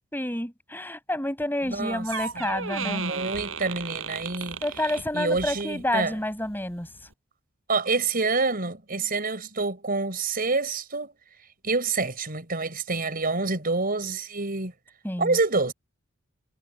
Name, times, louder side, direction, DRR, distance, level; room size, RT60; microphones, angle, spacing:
voice 1, 0.1-3.0 4.6-6.9 15.0-15.4, left 1 dB, 10° left, 7.9 m, -29 dB
voice 2, 1.6-2.1 2.4-2.5 2.8-4.6 5.1-6.1 7.7-11.1 11.6-14.7 15.2-15.7, right 3 dB, 45° right, 5.3 m, -27 dB
Door, 1.6-1.8 2.1-5.6 6.0-6.2 7.0-7.1, right 6 dB, 75° right, 7.3 m, -35 dB
head